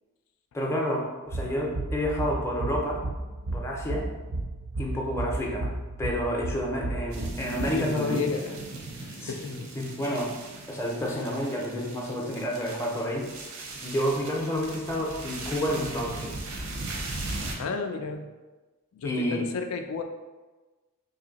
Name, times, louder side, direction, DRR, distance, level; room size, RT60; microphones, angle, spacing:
voice 1, 0.5-3.0 3.5-4.1 4.8-8.2 9.2-9.3 9.8-10.3 10.7-13.3 13.8-16.4 19.0-19.5, equal, 10° left, -2 dB, 0.5 m, -29 dB
sound 1, 1.3-7.7, right 2 dB, 55° right, 0.4 m, -33 dB
sound 2, 7.1-17.6, right 2 dB, 85° right, 0.8 m, -38 dB
voice 2, 7.7-8.6 9.0-9.7 17.6-18.3 18.9-20.0, left 5 dB, 85° left, 5 dB, 0.4 m, -32 dB
2.9 x 2.7 x 3.9 m, 1.2 s
head